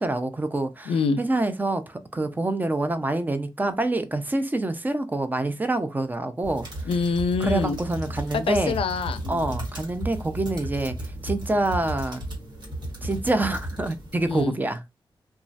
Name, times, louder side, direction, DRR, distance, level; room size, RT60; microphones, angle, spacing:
voice 1, 0.0-6.7 7.4-8.8 9.3-10.9 11.2-12.2 13.0-14.8, right 2 dB, 20° right, 0.4 m, -26 dB
voice 2, 0.9-1.2 6.9-7.8 8.3-9.5 14.3-14.5, left 5 dB, 80° left, 0.4 m, -25 dB
sound 1, 6.4-14.4, right 1 dB, 50° right, 1.5 m, -34 dB
3.0 x 2.3 x 2.6 m
wide cardioid pair, 105°, 9 cm